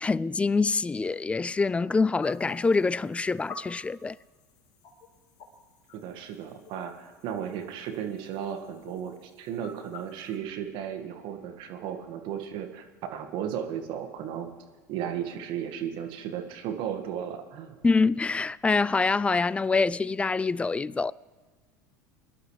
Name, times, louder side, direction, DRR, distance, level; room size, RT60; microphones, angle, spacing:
voice 1, 0.0-4.2 17.8-21.1, left 4 dB, 10° left, 0.3 m, -25 dB
sound 1, 2.2-10.4, left 4 dB, 50° left, 3.1 m, -50 dB
voice 2, 5.9-14.5 14.9-17.8, right 9 dB, 55° right, 1.8 m, -35 dB
22.5 x 11.5 x 3.3 m
hypercardioid pair, 80°, 10 cm